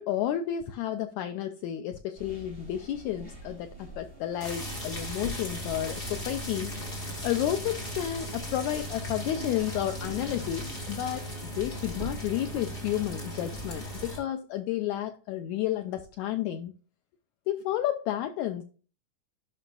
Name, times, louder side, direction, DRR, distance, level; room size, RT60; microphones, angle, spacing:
voice 1, 0.0-6.7 7.2-16.7 17.5-18.6, left 12 dB, 90° left, 1.6 m, -31 dB
sound 1, 2.2-10.3, right 1 dB, 15° right, 2.9 m, -49 dB
sound 2, 4.4-14.2, equal, 20° left, 1.6 m, -37 dB
sound 3, 10.0-12.6, left 7 dB, 70° left, 2.3 m, -49 dB
11.0 x 5.6 x 2.4 m
omnidirectional pair, 3.9 m